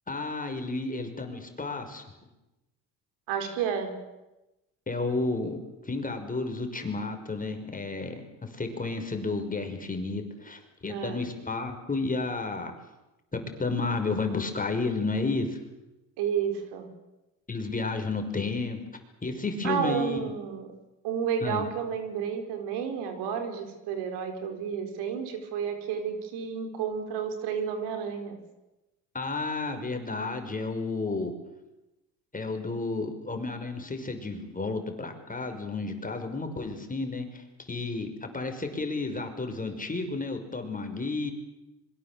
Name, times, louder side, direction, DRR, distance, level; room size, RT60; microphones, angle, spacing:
voice 1, 0.1-2.0 4.9-5.6 5.8-12.7 13.3-15.6 17.5-18.8 19.2-20.3 21.4-21.7 29.1-31.3 32.3-41.3, left 3 dB, 20° left, 5 dB, 5.7 m, -32 dB
voice 2, 3.3-4.0 10.9-11.2 16.2-16.9 19.6-20.7 21.0-28.4, right 7 dB, 80° right, 6 dB, 4.8 m, -31 dB
26.0 x 23.0 x 7.7 m, 0.99 s
supercardioid pair, 80°, 40 cm